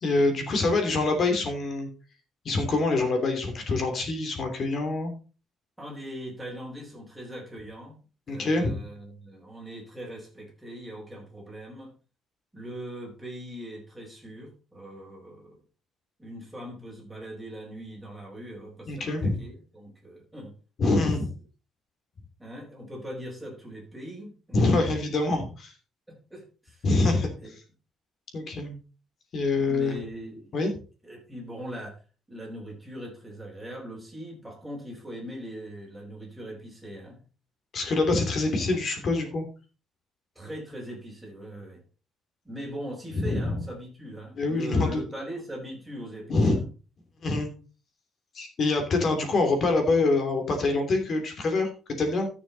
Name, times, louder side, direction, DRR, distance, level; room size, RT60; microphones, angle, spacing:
voice 1, 0.0-1.9 2.4-5.1 8.3-8.8 18.9-19.4 20.8-21.3 24.5-25.7 26.8-27.3 28.3-28.8 29.3-30.0 30.5-30.7 37.7-39.4 43.1-43.5 44.4-45.0 46.3-46.6 47.2-47.5 48.3-52.3, left 3 dB, 40° left, 5 dB, 3.0 m, -25 dB
voice 2, 5.8-8.0 8.3-11.9 12.5-15.6 16.2-20.6 22.4-24.8 26.1-26.9 27.4-27.5 29.6-30.6 31.0-32.0 32.3-37.2 40.3-41.8 42.4-46.6, equal, ahead, -2 dB, 4.9 m, -40 dB
13.5 x 6.9 x 4.1 m, 0.35 s
cardioid pair, 165°, 0 cm